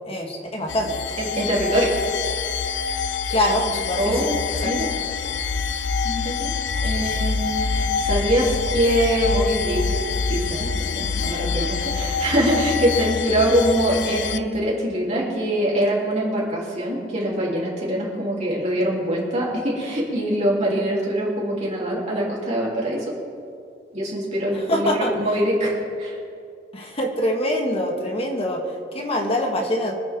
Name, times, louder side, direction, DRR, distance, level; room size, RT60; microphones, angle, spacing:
voice 1, 0.1-1.0 3.3-4.7 6.8-7.1 13.5-13.6 24.5-25.1 26.7-29.9, left 1 dB, 35° left, 1 dB, 1.7 m, -25 dB
sound 1, 0.7-14.4, left 5 dB, 80° left, 0.6 m, -26 dB
voice 2, 1.2-2.0 4.0-4.4 4.6-4.9 6.0-6.5 6.8-10.0 10.3-23.0 23.9-26.2, equal, 40° right, -6 dB, 3.3 m, -23 dB
25.5 x 9.0 x 3.7 m, 2.4 s
head